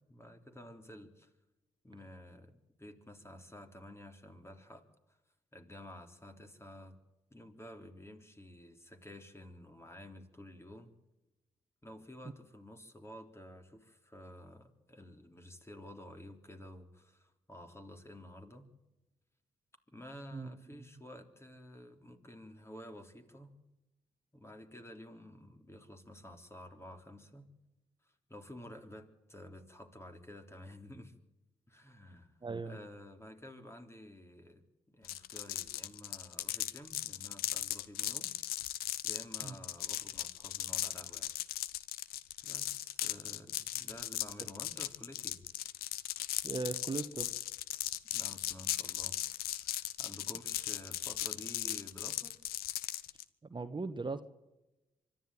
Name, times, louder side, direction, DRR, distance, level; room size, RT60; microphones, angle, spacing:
voice 1, 0.1-1.3 1.8-4.9 5.5-7.0 7.3-10.9 11.8-18.7 19.9-23.5 24.3-27.5 28.0-31.1 31.7-32.3 32.6-34.6 34.9-38.3 39.0-41.3 42.4-45.4 48.1-49.2 49.5-52.4, left 1 dB, 15° left, 6 dB, 3.6 m, -51 dB
voice 2, 32.4-32.8 39.4-39.5 44.4-44.5 46.4-47.3 53.5-54.2, right 3 dB, 30° right, 10 dB, 1.3 m, -38 dB
sound 1, 35.0-53.2, left 14 dB, 85° left, 0.8 m, -38 dB
24.5 x 12.0 x 9.1 m, 1.0 s
supercardioid pair, 45°, 15 cm